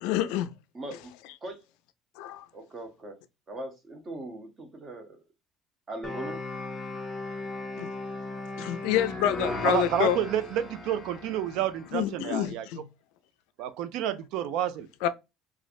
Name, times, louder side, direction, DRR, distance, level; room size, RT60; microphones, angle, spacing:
voice 1, 0.0-0.5 2.2-2.5 7.8-7.9 8.6-10.2 11.9-12.9 15.0-15.1, left 11 dB, 85° left, 0.4 m, -27 dB
voice 2, 0.7-1.1 1.4-1.6 2.5-3.2 3.5-5.2 5.9-6.4, right 1 dB, 25° right, 0.7 m, -40 dB
sound 1, 6.0-12.0, left 2 dB, 15° left, 0.5 m, -37 dB
voice 3, 9.6-12.7 13.6-14.9, right 10 dB, 65° right, 0.4 m, -29 dB
3.1 x 2.4 x 2.4 m
cardioid pair, 170°, 0 cm